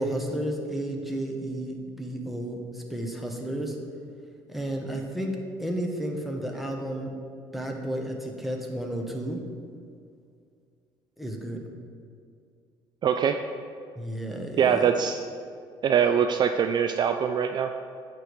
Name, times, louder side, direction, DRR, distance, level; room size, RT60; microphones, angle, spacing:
voice 1, 0.0-3.8 4.5-5.3 5.6-7.1 7.5-9.4 11.2-11.6 14.0-14.9, right 1 dB, ahead, 1 dB, 1.2 m, -32 dB
voice 2, 13.0-13.4 14.6-15.2 15.8-17.7, right 8 dB, 45° right, 7 dB, 0.4 m, -23 dB
9.0 x 3.4 x 6.2 m, 2.3 s
supercardioid pair, 85°, 10 cm